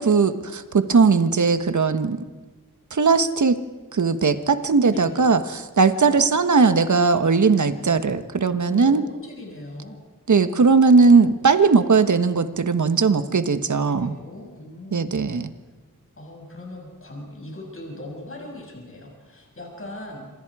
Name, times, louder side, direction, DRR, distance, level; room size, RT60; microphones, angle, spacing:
voice 1, 0.0-2.2 2.9-3.6 3.9-5.4 5.8-9.0 10.3-14.2 14.9-15.5, right 4 dB, 60° right, 10 dB, 1.4 m, -18 dB
voice 2, 4.9-5.3 6.0-6.2 8.6-10.0 13.7-15.3 16.2-20.3, left 1 dB, 40° left, -1 dB, 6.6 m, -39 dB
27.0 x 26.0 x 4.9 m, 1.2 s
wide cardioid pair, 95°, 34 cm